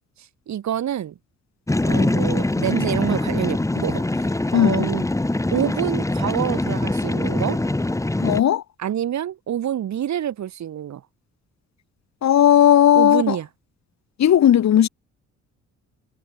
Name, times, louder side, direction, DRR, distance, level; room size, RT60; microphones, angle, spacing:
voice 1, 0.5-1.2 1.9-4.3 4.5-5.1 5.5-7.6 8.8-11.0 12.9-13.5, right 10 dB, 65° right, 5.9 m, -26 dB
sound 1, 1.7-8.4, left 2 dB, 10° left, 1.8 m, -23 dB
voice 2, 4.5-4.9 8.2-8.6 12.2-13.4 14.2-14.9, left 10 dB, 65° left, 2.8 m, -15 dB
cardioid pair, 90°, 30 cm